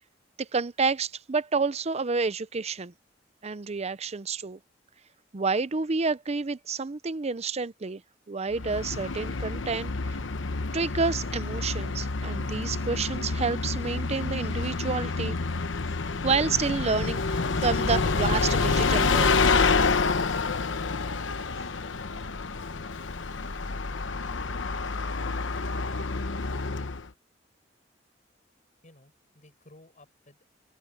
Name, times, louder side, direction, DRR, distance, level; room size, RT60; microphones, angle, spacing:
voice 1, 0.4-2.9 3.4-4.6 5.3-8.0 8.3-10.2 10.7-15.4 16.2-19.5, right 4 dB, 35° right, 0.6 m, -29 dB
Bus, 8.5-27.1, left 4 dB, 90° left, 0.9 m, -28 dB
voice 2, 28.8-30.5, left 2 dB, 45° left, 5.0 m, -56 dB
open air
head